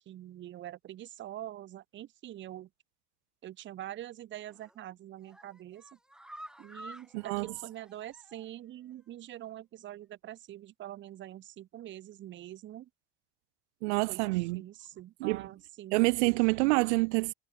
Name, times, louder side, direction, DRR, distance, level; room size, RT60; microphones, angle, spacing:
voice 1, 0.0-2.7 3.4-5.8 6.6-12.9 14.1-16.0, right 13 dB, 35° right, 0.7 m, -45 dB
sound 1, 4.4-4.8 5.2-8.6 8.9-9.0 9.4-9.5, right 1 dB, ahead, 0.7 m, -51 dB
voice 2, 7.1-7.5 13.8-14.6 15.2-15.4 15.9-17.3, right 25 dB, 85° right, 0.6 m, -27 dB
supercardioid pair, 115°, 34 cm